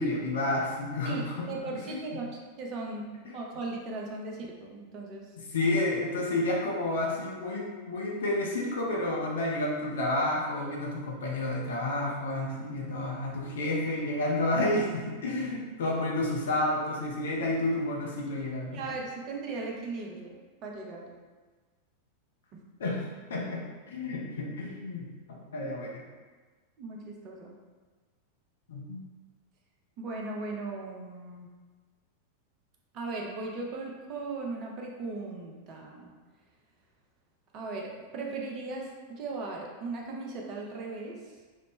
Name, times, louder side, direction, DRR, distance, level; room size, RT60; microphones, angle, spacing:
voice 1, 0.0-1.5 1.7-2.0 3.2-3.3 5.5-18.8 22.8-26.0 28.7-29.0, left 1 dB, 65° left, -2 dB, 0.5 m, -30 dB
voice 2, 1.0-2.3 2.6-5.3 18.7-21.2 26.8-27.6 30.0-31.5 32.9-36.1 37.5-41.3, right 3 dB, 35° right, 0 dB, 0.5 m, -38 dB
3.1 x 2.0 x 3.0 m, 1.4 s
figure-of-eight pair, 90°, 0 cm